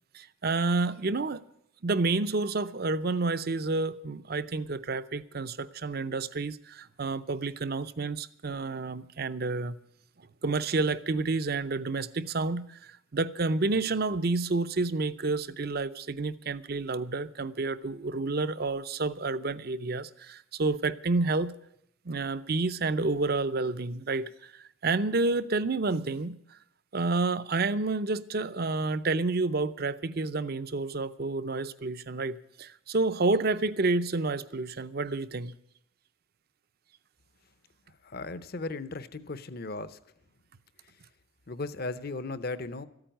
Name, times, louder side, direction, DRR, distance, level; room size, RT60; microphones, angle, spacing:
voice 1, 0.1-1.4 1.8-9.8 10.4-21.5 22.1-26.6 26.9-35.6, right 3 dB, 50° right, 0.6 m, -29 dB
voice 2, 38.0-40.0 41.5-42.9, left 3 dB, 50° left, 0.8 m, -36 dB
14.0 x 8.9 x 9.1 m
head